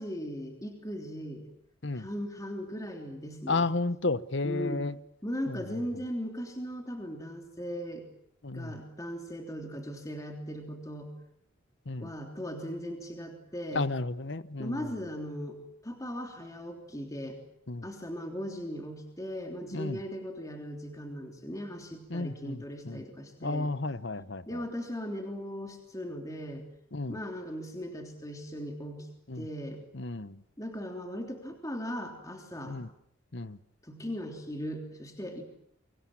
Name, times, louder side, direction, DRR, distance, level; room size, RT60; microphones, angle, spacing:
voice 1, 0.0-1.4 1.9-3.7 4.4-4.8 5.2-8.0 8.5-11.1 12.0-13.8 14.6-17.4 17.8-23.7 24.5-26.7 27.1-29.1 29.3-29.8 30.6-32.8 33.8-35.4, equal, 15° left, 3 dB, 3.3 m, -38 dB
voice 2, 3.5-5.0 5.5-5.6 8.4-8.8 11.9-12.1 13.7-15.0 17.7-17.9 19.7-20.0 22.1-23.0 23.4-24.6 26.9-27.2 29.3-29.5 29.9-30.4 32.6-32.9 33.3-33.6, left 3 dB, 60° left, 15 dB, 1.0 m, -33 dB
29.0 x 25.0 x 7.5 m, 0.68 s
head